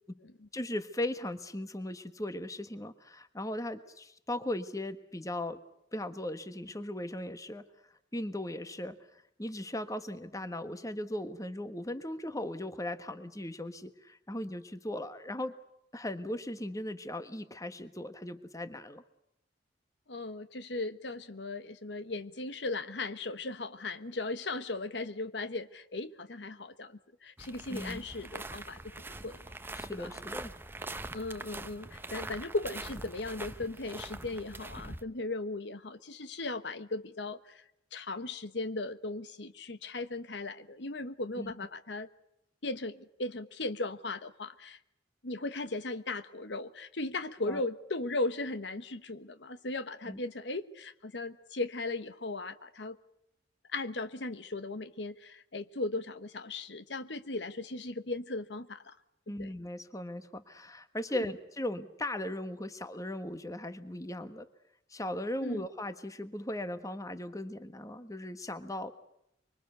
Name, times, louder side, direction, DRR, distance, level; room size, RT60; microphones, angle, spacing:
voice 1, 0.5-5.6 5.9-7.6 8.1-15.6 15.9-19.0 27.7-28.0 29.7-30.6 41.4-41.5 47.5-47.6 50.1-50.2 59.3-64.5 64.9-68.9, left 1 dB, 20° left, 1.4 m, -38 dB
voice 2, 20.1-28.9 29.2-29.4 29.9-30.1 31.1-37.4 37.9-42.1 42.6-44.8 45.2-53.0 53.7-58.9 59.4-59.5 61.1-61.2 65.4-65.6, left 2 dB, 70° left, 1.2 m, -37 dB
sound 1, 27.4-35.0, right 2 dB, 10° right, 0.9 m, -43 dB
25.0 x 24.5 x 6.8 m
head